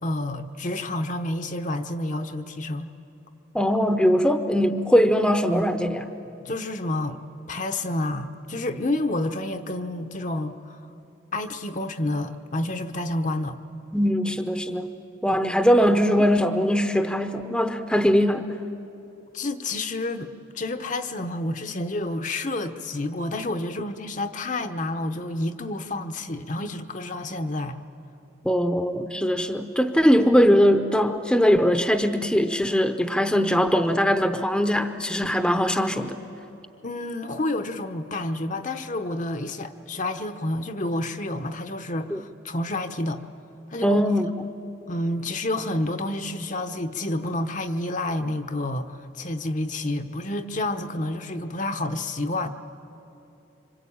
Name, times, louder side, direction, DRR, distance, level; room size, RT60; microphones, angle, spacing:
voice 1, 0.0-2.9 6.4-7.2 7.5-10.8 11.3-13.6 19.3-20.3 20.5-27.8 36.8-43.2 43.7-44.0 44.9-52.5, left 1 dB, 40° left, 7 dB, 0.9 m, -29 dB
voice 2, 3.5-6.1 13.9-14.9 15.2-18.5 28.4-36.2 42.1-42.2 43.8-44.3, equal, 5° left, 7 dB, 0.8 m, -21 dB
27.0 x 25.5 x 8.7 m, 2.9 s
head